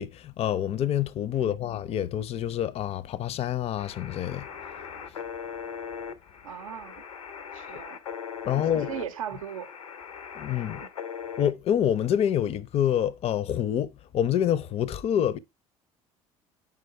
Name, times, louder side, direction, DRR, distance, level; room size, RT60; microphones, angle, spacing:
voice 1, 0.0-4.5 8.4-8.9 10.4-10.8 11.4-15.4, left 10 dB, 35° left, 0.5 m, -27 dB
sound 1, 3.8-11.5, left 7 dB, 80° left, 0.6 m, -39 dB
voice 2, 6.4-7.0 7.5-8.0 8.5-9.7 10.6-10.9, right 9 dB, 75° right, 0.5 m, -39 dB
4.8 x 4.8 x 4.7 m
figure-of-eight pair, 55°, 17 cm